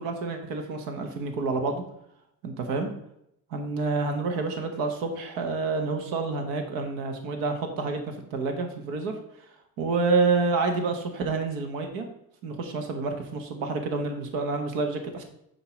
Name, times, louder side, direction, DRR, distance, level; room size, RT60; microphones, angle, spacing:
voice 1, 0.0-1.8 2.4-2.9 3.5-9.1 9.8-12.0 12.4-15.2, right 4 dB, 80° right, 5 dB, 1.3 m, -28 dB
8.7 x 2.9 x 6.1 m, 0.78 s
cardioid pair, 170°, 34 cm